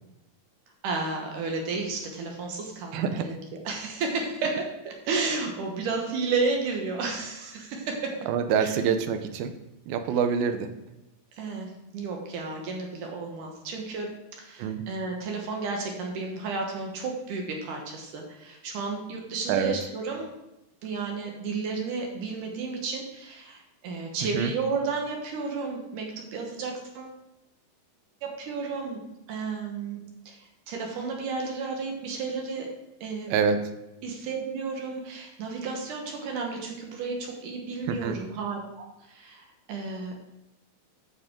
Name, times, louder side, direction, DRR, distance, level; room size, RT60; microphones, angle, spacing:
voice 1, 0.8-8.1 8.6-8.7 11.4-14.1 14.4-20.3 20.8-27.2 28.2-29.0 29.3-30.0 30.3-32.7 33.0-33.4 34.0-40.1, right 4 dB, 65° right, 1 dB, 2.5 m, -32 dB
voice 2, 2.9-3.3 8.3-9.5 9.9-10.7 14.6-14.8 19.5-19.7 24.3-24.5 33.3-33.6 37.9-38.2, right 7 dB, 80° right, 9 dB, 2.4 m, -25 dB
9.9 x 6.7 x 3.7 m, 0.94 s
omnidirectional pair, 4.3 m